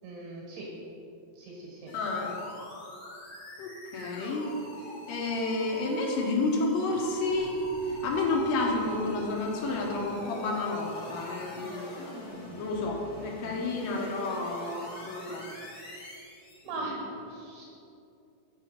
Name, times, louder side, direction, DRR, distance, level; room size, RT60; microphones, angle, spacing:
voice 1, 0.0-0.7 1.4-1.9 16.6-17.7, right 2 dB, 85° right, -3 dB, 3.3 m, -39 dB
voice 2, 1.9-2.4 3.6-4.5 5.1-7.5 7.9-12.1 12.6-15.5, left 2 dB, 70° left, -1 dB, 2.3 m, -30 dB
sound 1, 1.9-16.7, left 1 dB, 45° left, 1.6 m, -44 dB
6.9 x 6.6 x 5.6 m, 2.7 s
omnidirectional pair, 4.5 m